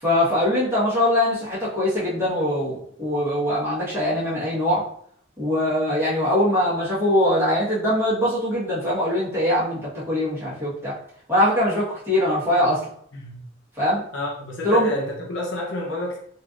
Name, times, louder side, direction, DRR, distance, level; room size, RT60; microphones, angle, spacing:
voice 1, 0.0-4.8 5.4-10.9 11.3-12.9 13.8-14.0 14.6-14.9, left 1 dB, 15° right, -10 dB, 1.3 m, -22 dB
voice 2, 14.1-16.2, left 1 dB, 70° left, -1 dB, 0.7 m, -29 dB
3.1 x 2.6 x 2.5 m, 0.64 s
head